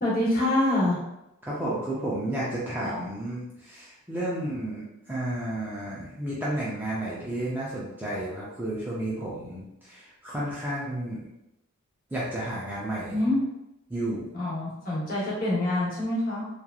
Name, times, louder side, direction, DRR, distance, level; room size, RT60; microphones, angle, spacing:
voice 1, 0.0-1.0 2.8-3.1 13.1-13.4 14.3-16.4, left 1 dB, 40° left, -7 dB, 1.0 m, -26 dB
voice 2, 1.4-11.2 12.1-13.1 13.9-14.3, right 1 dB, 10° right, -8 dB, 0.4 m, -32 dB
2.9 x 2.4 x 2.3 m, 0.87 s
head